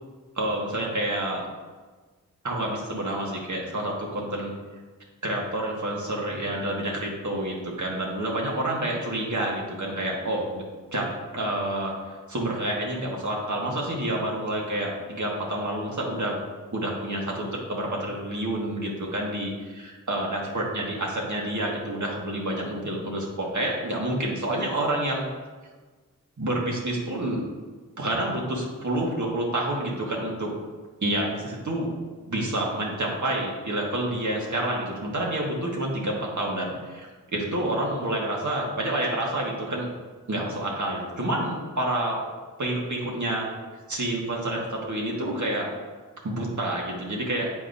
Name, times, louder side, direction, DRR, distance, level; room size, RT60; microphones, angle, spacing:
voice 1, 0.3-1.4 2.4-4.5 5.2-10.6 10.9-16.4 16.7-25.2 26.4-27.4 28.0-30.5 31.0-31.9 32.3-39.9 40.3-42.2 42.6-43.5 43.9-45.7 46.2-47.5, right 1 dB, 60° right, -2 dB, 1.5 m, -28 dB
7.7 x 4.8 x 2.7 m, 1.4 s
cardioid pair, 40°, 34 cm